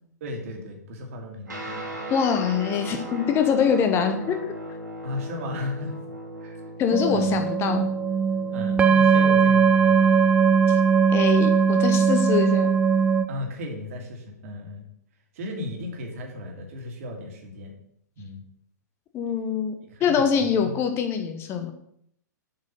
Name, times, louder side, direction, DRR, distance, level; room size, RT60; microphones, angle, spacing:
voice 1, 0.2-2.0 5.0-6.0 6.4-6.6 7.1-7.4 8.5-10.2 13.3-14.8 15.3-17.7 18.2-18.4 19.9-20.8, left 1 dB, 50° right, 2 dB, 2.0 m, -35 dB
Guitar, 1.5-11.1, right 1 dB, 75° right, 2.3 m, -38 dB
voice 2, 2.1-4.4 6.8-7.9 10.7-10.8 11.1-12.7 19.1-19.7 20.0-21.7, left 7 dB, 25° left, 6 dB, 0.9 m, -24 dB
sound 1, 6.9-13.2, right 6 dB, 10° right, 0.4 m, -19 dB
7.2 x 5.1 x 5.7 m, 0.70 s
figure-of-eight pair, 105°, 10 cm